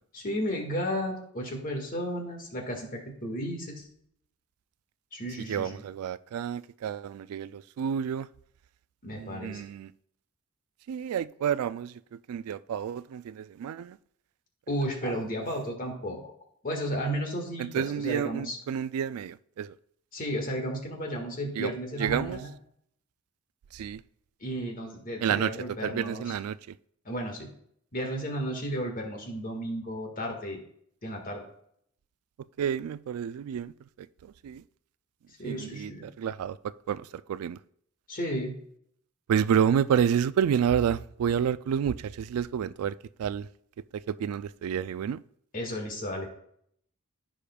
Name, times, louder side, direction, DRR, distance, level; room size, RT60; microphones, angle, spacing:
voice 1, 0.1-3.9 5.1-5.8 9.0-9.6 14.7-16.3 16.6-18.6 20.1-22.5 24.4-26.3 27.1-27.5 27.9-30.6 31.0-31.4 35.4-36.1 38.1-38.6 45.5-46.3, equal, 40° left, 1.7 m, -33 dB
voice 2, 5.5-8.3 9.1-9.9 10.9-14.0 15.0-15.2 17.6-19.7 21.6-21.7 22.0-22.4 23.7-24.0 25.2-25.5 25.8-26.6 32.6-33.7 34.2-34.6 35.4-36.6 36.9-37.0 37.3-37.6 39.3-43.5 44.1-45.2, right 8 dB, 75° right, 0.3 m, -29 dB
15.0 x 5.1 x 2.3 m
head